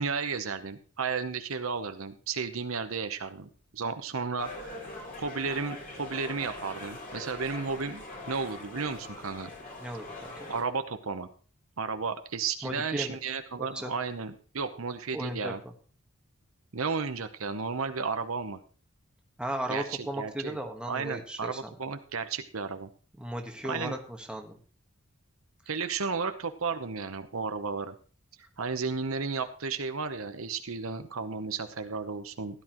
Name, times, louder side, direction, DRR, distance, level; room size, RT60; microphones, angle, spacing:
voice 1, 0.0-4.8 5.2-9.5 10.5-11.3 11.8-15.6 16.7-18.6 19.7-20.6 20.9-22.9 23.6-23.9 25.7-27.9 28.6-32.6, right 5 dB, 70° right, 8 dB, 0.9 m, -33 dB
sound 1, 4.4-10.6, left 2 dB, 40° left, 3.5 m, -42 dB
voice 2, 9.8-10.5 12.6-13.2 13.6-13.9 15.1-15.5 19.4-21.7 23.2-24.6, right 1 dB, 5° right, 3 dB, 1.5 m, -36 dB
16.0 x 11.0 x 3.1 m, 0.39 s
head